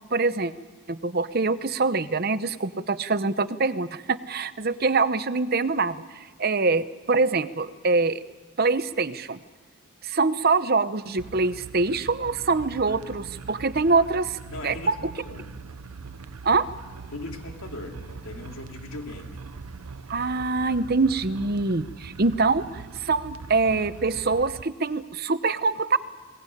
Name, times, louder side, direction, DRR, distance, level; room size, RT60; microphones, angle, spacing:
voice 1, 0.1-0.5 0.9-8.2 8.6-9.4 10.0-14.9 16.4-16.7 20.1-26.0, right 3 dB, 45° right, 13 dB, 0.8 m, -24 dB
sound 1, 11.2-24.6, right 4 dB, 85° right, 0.7 m, -42 dB
voice 2, 14.5-15.5 17.1-19.4, left 2 dB, 75° left, 3 dB, 2.8 m, -39 dB
22.5 x 19.0 x 9.9 m, 1.4 s
head